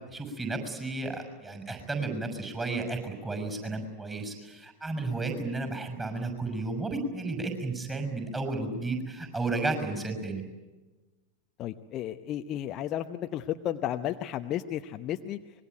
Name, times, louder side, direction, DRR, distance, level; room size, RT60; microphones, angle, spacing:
voice 1, 0.1-10.4, right 3 dB, 15° right, 6 dB, 6.3 m, -33 dB
voice 2, 11.6-15.4, left 11 dB, 35° left, 8 dB, 0.8 m, -33 dB
25.0 x 21.5 x 9.3 m, 1.2 s
figure-of-eight pair, 90°, 0 cm